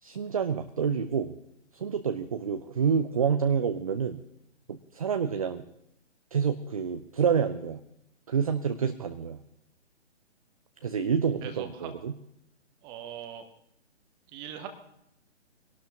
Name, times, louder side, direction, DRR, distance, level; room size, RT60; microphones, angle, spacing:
voice 1, 0.0-1.3 1.7-4.2 4.7-5.6 6.3-7.8 8.3-9.4 10.8-12.1, right 6 dB, 30° right, 8 dB, 0.5 m, -28 dB
voice 2, 11.4-11.9 12.8-13.5 14.3-14.7, right 9 dB, 15° right, 7 dB, 0.9 m, -40 dB
23.5 x 12.0 x 2.9 m, 0.76 s
figure-of-eight pair, 140°, 36 cm